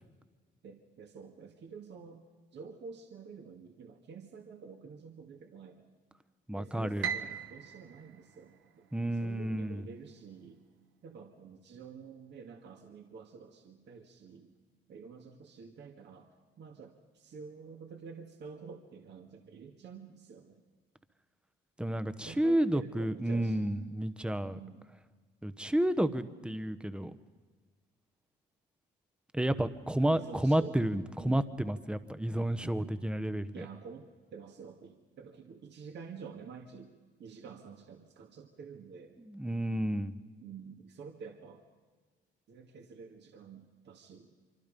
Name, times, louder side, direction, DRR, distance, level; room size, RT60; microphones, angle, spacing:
voice 1, 0.6-2.2 2.5-5.9 6.6-8.9 9.2-10.6 11.0-14.5 14.9-20.6 22.3-23.7 24.4-24.9 30.0-30.8 31.2-31.5 33.5-36.9 37.2-39.2 40.4-41.6 42.5-44.4, right 5 dB, 65° right, 3 dB, 2.0 m, -49 dB
voice 2, 6.5-7.1 8.9-9.9 21.8-24.6 25.4-27.2 29.3-33.7 39.2-40.2, right 1 dB, 5° right, 12 dB, 1.1 m, -31 dB
Piano, 7.0-9.3, right 7 dB, 80° right, 1.2 m, -39 dB
25.5 x 25.0 x 5.4 m, 1.4 s
cardioid pair, 90°, 20 cm